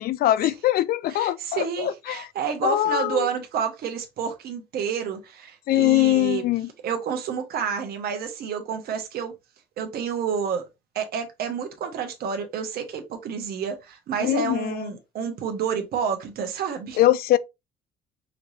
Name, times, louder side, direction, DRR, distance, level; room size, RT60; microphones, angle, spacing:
voice 1, 0.0-2.3 2.6-3.3 5.7-6.7 14.2-14.8 17.0-17.4, left 14 dB, 65° left, 0.4 m, -22 dB
voice 2, 1.1-6.4 6.8-9.3 9.8-10.7 10.9-17.0, right 7 dB, 65° right, 1.4 m, -29 dB
5.7 x 3.2 x 2.7 m
cardioid pair, 110°, 17 cm